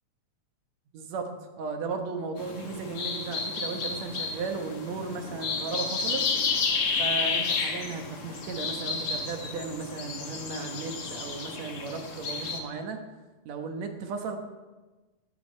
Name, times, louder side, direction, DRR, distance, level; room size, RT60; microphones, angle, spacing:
voice 1, 0.9-1.3 1.6-6.3 6.9-13.0 13.5-14.4, right 4 dB, 70° right, 4 dB, 2.4 m, -35 dB
sound 1, 2.4-12.6, left 4 dB, 55° left, 2.3 m, -31 dB
15.5 x 10.5 x 4.5 m, 1.2 s
omnidirectional pair, 3.3 m